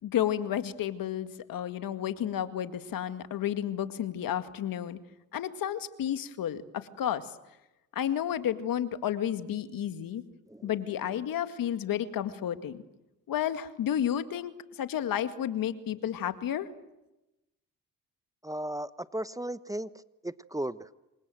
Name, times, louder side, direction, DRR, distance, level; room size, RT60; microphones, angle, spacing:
voice 1, 0.0-5.0 5.3-7.3 8.0-10.2 10.6-12.8 13.3-16.7, left 10 dB, 65° left, 10 dB, 2.1 m, -31 dB
voice 2, 18.4-19.9 20.2-20.9, right 1 dB, 10° right, 14 dB, 1.0 m, -35 dB
28.0 x 24.5 x 7.8 m, 0.96 s
supercardioid pair, 65°, 36 cm